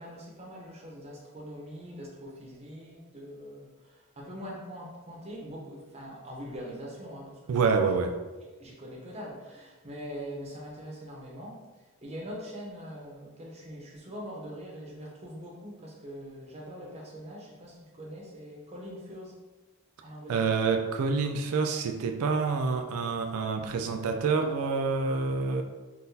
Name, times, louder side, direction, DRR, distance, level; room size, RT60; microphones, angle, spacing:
voice 1, 0.0-7.7 8.6-11.6 12.0-19.3 20.0-20.5, equal, 30° right, -2 dB, 0.6 m, -43 dB
voice 2, 7.5-8.2 20.3-25.6, right 4 dB, 80° right, 5 dB, 0.3 m, -27 dB
3.7 x 2.4 x 2.7 m, 1.2 s
head